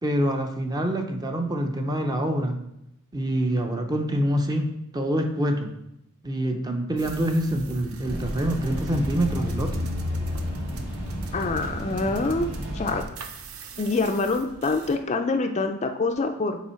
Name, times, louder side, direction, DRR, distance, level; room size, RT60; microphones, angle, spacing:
voice 1, 0.0-2.6 3.1-5.7 6.2-9.8, right 1 dB, 20° right, 4 dB, 0.6 m, -26 dB
sound 1, 7.0-14.9, left 1 dB, 75° right, 0.6 m, -36 dB
sound 2, 8.0-13.0, equal, 50° right, 2.0 m, -33 dB
voice 2, 11.3-12.5 12.7-13.0 13.8-16.6, left 3 dB, 30° left, 6 dB, 0.4 m, -25 dB
7.2 x 4.5 x 4.4 m, 0.84 s
head